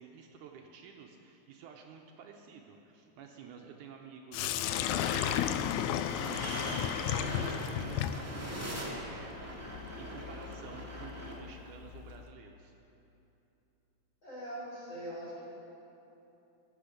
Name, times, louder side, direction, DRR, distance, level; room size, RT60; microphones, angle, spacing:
voice 1, 0.0-12.7, right 6 dB, 75° right, 2 dB, 2.1 m, -51 dB
Sink (filling or washing), 4.3-12.2, left 10 dB, 85° left, 1.7 m, -35 dB
sound 1, 4.9-11.3, equal, 5° right, 1.3 m, -41 dB
voice 2, 14.2-15.4, right 1 dB, 35° left, -7 dB, 4.6 m, -42 dB
21.0 x 8.2 x 5.1 m, 2.9 s
omnidirectional pair, 3.8 m